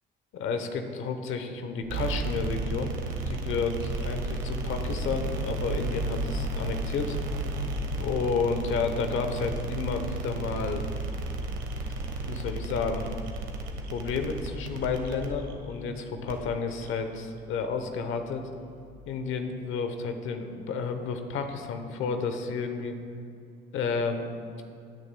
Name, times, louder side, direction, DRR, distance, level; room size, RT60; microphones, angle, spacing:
voice 1, 0.3-2.9 3.3-7.2 8.0-10.9 12.2-13.1 13.9-18.5 19.0-22.9 23.7-24.3, left 5 dB, 85° left, 7 dB, 0.9 m, -31 dB
sound 1, 1.8-18.9, right 2 dB, 80° right, 1.2 m, -34 dB
16.5 x 8.7 x 2.2 m, 2.6 s
cardioid pair, 90°, 20 cm